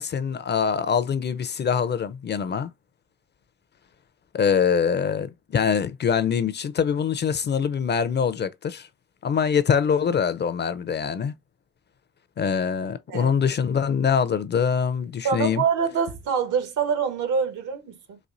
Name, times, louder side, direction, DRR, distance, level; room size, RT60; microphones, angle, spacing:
voice 1, 0.0-2.7 4.3-8.9 9.2-11.3 12.4-15.6, left 7 dB, 35° left, 0.4 m, -24 dB
voice 2, 15.2-18.2, right 6 dB, 80° right, 1.2 m, -25 dB
4.2 x 2.5 x 2.5 m
cardioid pair, 90°, 30 cm